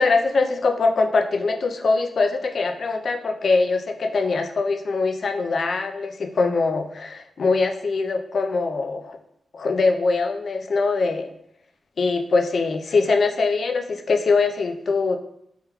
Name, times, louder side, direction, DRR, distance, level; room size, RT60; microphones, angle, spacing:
voice 1, 0.0-9.2 9.5-11.3 12.0-15.2, left 4 dB, 65° left, 5 dB, 0.3 m, -22 dB
3.5 x 2.2 x 2.9 m, 0.73 s
cardioid pair, 65°, 0 cm